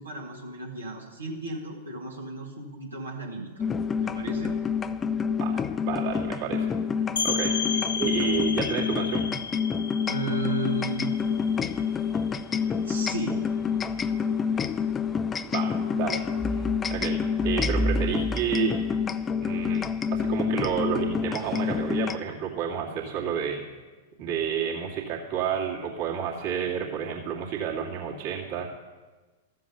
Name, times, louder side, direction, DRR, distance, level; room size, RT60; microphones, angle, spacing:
voice 1, 0.0-3.6 4.0-4.5 7.5-7.8 10.1-11.1 12.8-13.4, right 2 dB, 80° right, -3 dB, 2.0 m, -34 dB
sound 1, 3.6-22.2, left 6 dB, 20° left, 0.4 m, -27 dB
voice 2, 5.4-6.7 7.2-7.6 8.0-9.3 15.4-16.2 16.5-16.7 16.9-18.7 19.4-19.8 20.1-23.6 24.2-28.7, right 8 dB, 45° right, -3 dB, 2.3 m, -30 dB
sound 2, 7.2-12.6, left 5 dB, 65° left, 0.8 m, -33 dB
13.5 x 7.6 x 6.9 m, 1.3 s
figure-of-eight pair, 100°, 0 cm